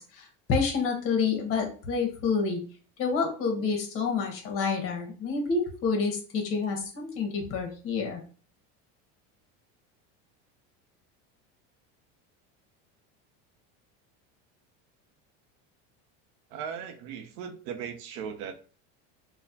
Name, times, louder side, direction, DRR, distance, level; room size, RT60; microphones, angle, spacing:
voice 1, 0.0-2.6 3.0-8.2, left 5 dB, 40° left, 1.0 m, -28 dB
voice 2, 16.5-18.5, right 7 dB, 70° right, 0.6 m, -37 dB
3.9 x 2.1 x 2.7 m
cardioid pair, 155°, 33 cm